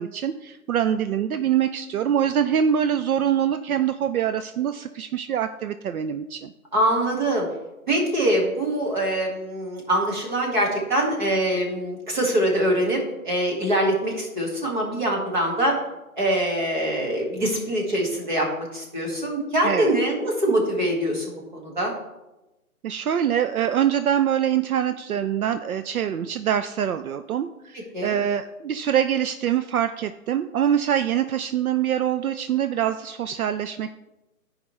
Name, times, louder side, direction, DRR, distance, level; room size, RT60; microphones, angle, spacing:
voice 1, 0.0-6.5 19.6-19.9 22.8-33.9, right 9 dB, 75° right, 10 dB, 0.5 m, -24 dB
voice 2, 6.7-7.5 7.9-15.8 16.2-21.9 27.9-28.2, right 1 dB, 30° right, -2 dB, 1.8 m, -24 dB
13.5 x 5.0 x 3.1 m, 1.0 s
hypercardioid pair, 175°, 44 cm